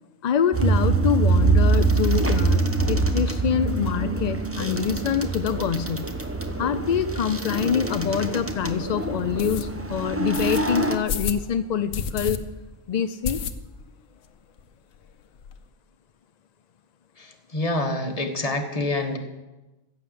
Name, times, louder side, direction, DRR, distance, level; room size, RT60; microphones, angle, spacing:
voice 1, 0.2-6.1 6.6-12.4 12.9-13.4, left 7 dB, 60° left, 10 dB, 0.4 m, -25 dB
sound 1, 0.5-11.0, right 3 dB, 10° right, 0.8 m, -24 dB
sound 2, 8.0-8.1 8.6-8.7 9.4-9.7 10.3-10.6 11.1-11.4 11.9-12.4 12.7-12.8 13.2-13.9 14.2-14.3 14.6-14.7 14.9-15.6, left 6 dB, 85° left, 1.2 m, -30 dB
voice 2, 17.2-19.2, left 2 dB, 30° left, 4 dB, 1.5 m, -27 dB
14.5 x 8.3 x 7.6 m, 1.1 s
omnidirectional pair, 1.3 m